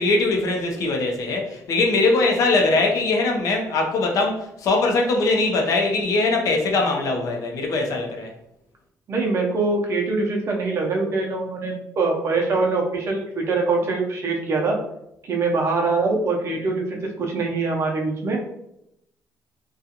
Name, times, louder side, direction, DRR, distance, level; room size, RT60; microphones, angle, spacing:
voice 1, 0.0-8.3, left 3 dB, 65° left, 1 dB, 0.6 m, -21 dB
voice 2, 9.1-14.8 15.2-18.4, right 3 dB, 50° right, 0 dB, 0.6 m, -23 dB
2.4 x 2.3 x 2.8 m, 0.79 s
cardioid pair, 125°, 6 cm